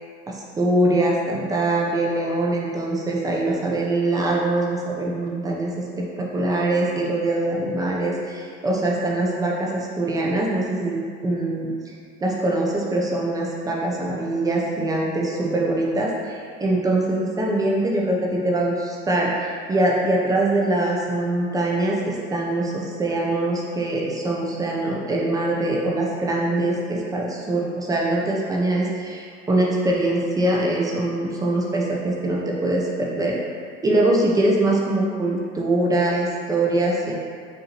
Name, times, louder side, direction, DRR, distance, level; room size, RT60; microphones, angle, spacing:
voice 1, 0.3-5.7 6.0-11.9 12.2-33.3 33.8-37.1, right 2 dB, 15° right, -3 dB, 0.6 m, -23 dB
6.6 x 2.6 x 2.9 m, 2.1 s
cardioid pair, 155°, 20 cm